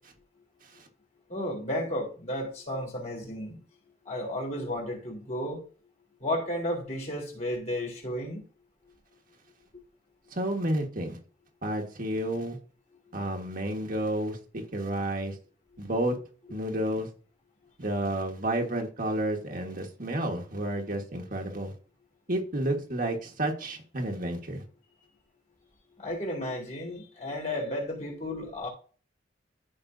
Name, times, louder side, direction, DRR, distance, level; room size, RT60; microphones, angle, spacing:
voice 1, 1.3-3.6 4.1-5.6 6.2-8.4 26.0-28.7, left 1 dB, 40° left, 3.7 m, -33 dB
voice 2, 10.3-11.2 11.6-12.6 13.1-15.3 15.8-16.2 16.5-17.1 17.8-21.7 22.3-24.6, right 1 dB, 45° right, 1.6 m, -31 dB
14.0 x 5.3 x 2.7 m
head